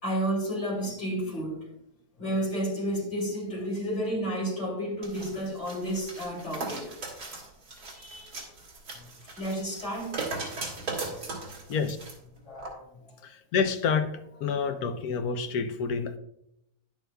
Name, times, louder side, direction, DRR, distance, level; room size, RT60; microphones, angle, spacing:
voice 1, 0.0-1.7 2.2-7.0 7.9-8.5 8.9-9.1 9.4-10.2 12.4-12.9, right 1 dB, 50° left, 3.1 m, -31 dB
sound 1, 5.0-12.1 12.6-12.7, right 3 dB, 80° right, 2.4 m, -38 dB
voice 2, 13.5-14.1 14.4-16.2, left 6 dB, 75° left, 1.2 m, -27 dB
11.0 x 8.9 x 2.3 m
omnidirectional pair, 1.6 m